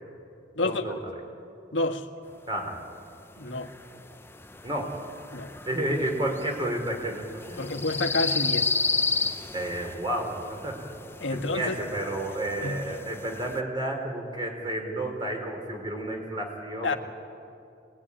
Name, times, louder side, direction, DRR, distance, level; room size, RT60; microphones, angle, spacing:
voice 1, 0.6-1.1 2.5-2.8 4.6-5.0 5.7-7.7 9.5-10.8 11.3-17.0, right 1 dB, 25° right, 2 dB, 4.3 m, -31 dB
voice 2, 1.7-2.0 3.4-3.7 5.3-5.5 7.6-8.7 11.2-11.8 12.6-13.0 16.8-16.9, left 2 dB, 85° left, 5 dB, 1.7 m, -28 dB
sound 1, 2.8-13.6, left 4 dB, 15° left, 0.8 m, -33 dB
25.0 x 20.5 x 10.0 m, 2.5 s
head